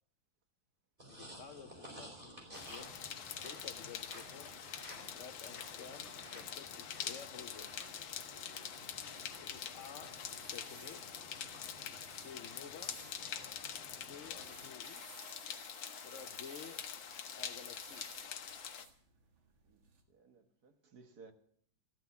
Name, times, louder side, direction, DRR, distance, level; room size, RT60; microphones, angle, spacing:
sound 1, 1.0-14.7, right 1 dB, 25° right, 4.0 m, -55 dB
voice 1, 1.1-4.5 4.9-7.7 9.4-11.2 12.0-13.0 14.0-15.0 16.0-16.8 17.3-18.1, left 7 dB, 65° left, 0.7 m, -53 dB
sound 2, 2.4-20.0, right 5 dB, 85° right, 2.6 m, -61 dB
sound 3, 2.5-18.9, left 8 dB, 80° left, 1.8 m, -45 dB
voice 2, 20.1-21.3, right 4 dB, 55° right, 1.8 m, -59 dB
14.0 x 12.5 x 7.0 m
omnidirectional pair, 2.1 m